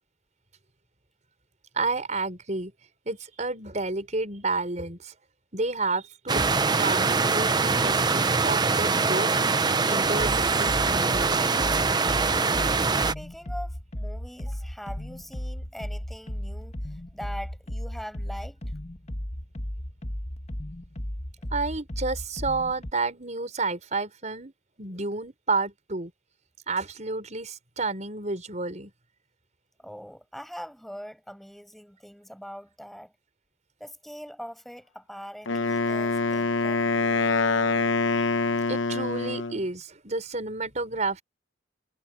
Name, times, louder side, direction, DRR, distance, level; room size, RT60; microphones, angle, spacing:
voice 1, 1.7-2.7 3.1-5.1 5.5-9.3 9.9-11.4 21.5-24.5 24.8-26.1 26.7-28.9 38.1-38.3 38.7-41.2, right 3 dB, 40° right, 5.4 m, -30 dB
sound 1, 6.3-13.1, right 4 dB, 20° right, 0.6 m, -23 dB
sound 2, 10.0-22.9, equal, 35° left, 1.7 m, -35 dB
voice 2, 13.1-18.6 29.8-33.1 33.8-37.2, equal, ahead, 7.7 m, -42 dB
Wind instrument woodwind instrument, 35.5-39.6, left 3 dB, 85° left, 1.0 m, -25 dB
head